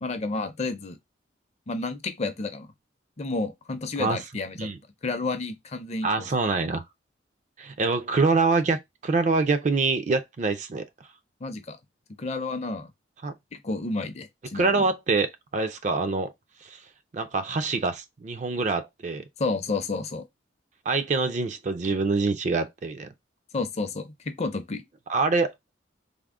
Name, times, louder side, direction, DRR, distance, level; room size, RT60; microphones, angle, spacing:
voice 1, 0.0-1.0 1.7-2.7 3.2-4.7 5.0-6.3 11.4-11.8 12.2-12.9 13.5-14.8 19.4-20.2 23.5-24.8, left 3 dB, 35° left, 0.5 m, -31 dB
voice 2, 6.0-6.8 7.6-10.9 13.2-13.3 14.5-16.3 16.6-16.8 17.1-19.3 20.9-23.1 25.1-25.5, right 4 dB, 40° right, 0.4 m, -25 dB
3.5 x 2.0 x 3.5 m
head